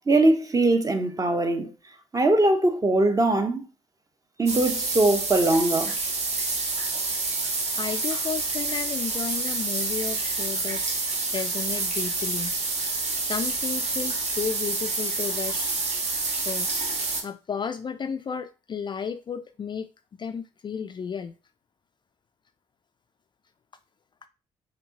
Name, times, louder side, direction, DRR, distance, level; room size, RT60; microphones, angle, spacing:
voice 1, 0.1-1.7 2.1-3.6 4.4-6.0, right 2 dB, 25° right, 0.8 m, -21 dB
sound 1, 4.5-17.2, right 3 dB, 50° right, 1.0 m, -28 dB
voice 2, 7.8-12.5 13.2-15.7 16.4-16.7 17.2-19.9 20.2-21.3, left 7 dB, 30° left, 0.3 m, -33 dB
5.1 x 2.8 x 2.8 m
hypercardioid pair, 45°, 15 cm